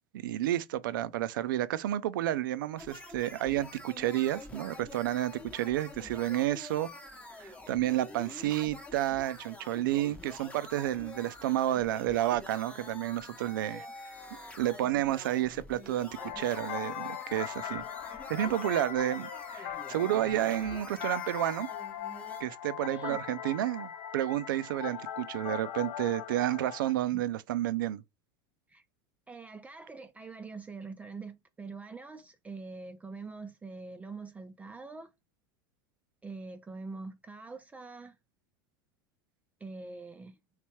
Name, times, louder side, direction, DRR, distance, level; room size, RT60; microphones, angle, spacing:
voice 1, 0.1-6.9 7.4-13.8 14.6-17.8 18.3-21.7 22.4-28.0, right 13 dB, 80° right, 0.4 m, -31 dB
sound 1, 2.8-22.4, left 2 dB, 10° left, 0.8 m, -47 dB
voice 2, 13.6-13.9 22.9-23.2 27.1-27.2 28.7-28.8 29.3-35.1 36.2-38.2 39.6-40.4, right 3 dB, 15° right, 0.4 m, -44 dB
sound 2, 16.2-26.9, left 10 dB, 70° left, 0.6 m, -40 dB
3.3 x 3.2 x 3.0 m
hypercardioid pair, 105°, 11 cm